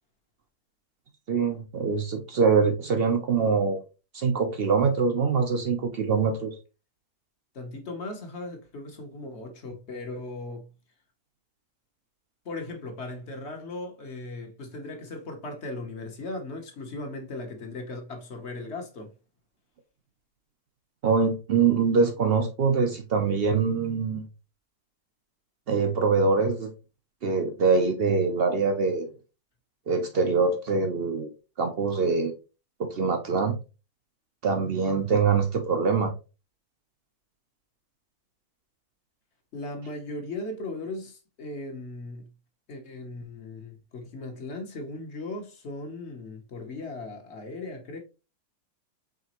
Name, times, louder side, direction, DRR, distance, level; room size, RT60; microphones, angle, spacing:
voice 1, 1.3-3.8 4.1-6.5 21.0-24.2 25.7-26.7 27.2-29.1 29.9-31.3 31.6-32.3 32.8-33.6 34.4-36.1, right 5 dB, 60° right, 0.6 m, -24 dB
voice 2, 7.5-10.7 12.4-19.1 39.5-42.3 42.7-48.0, left 2 dB, 50° left, 1.1 m, -38 dB
5.0 x 3.4 x 2.9 m
omnidirectional pair, 1.6 m